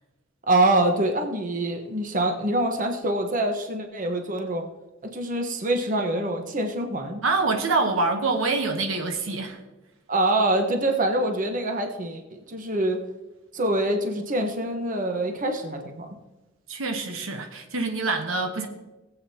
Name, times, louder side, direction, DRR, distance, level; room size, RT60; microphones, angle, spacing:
voice 1, 0.5-4.6 5.1-7.2 10.1-13.0 13.5-16.1, right 1 dB, 40° right, 4 dB, 1.2 m, -25 dB
voice 2, 7.2-9.6 16.7-18.7, right 3 dB, 85° right, 5 dB, 1.1 m, -25 dB
19.5 x 8.1 x 2.9 m, 1.1 s
head